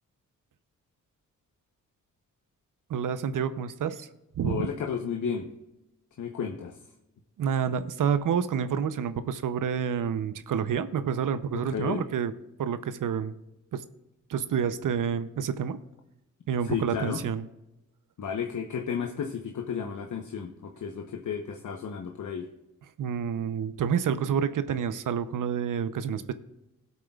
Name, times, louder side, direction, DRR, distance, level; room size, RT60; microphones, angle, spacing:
voice 1, 2.9-4.1 4.4-4.7 7.4-12.3 12.6-13.3 13.7-13.8 14.3-15.8 16.5-17.5 23.0-26.3, right 7 dB, 80° right, 12 dB, 0.7 m, -28 dB
voice 2, 4.4-5.5 6.2-6.7 11.7-12.0 16.7-17.2 18.2-22.5, left 7 dB, 70° left, 4 dB, 0.9 m, -33 dB
19.5 x 8.3 x 2.4 m, 0.97 s
wide cardioid pair, 115°, 31 cm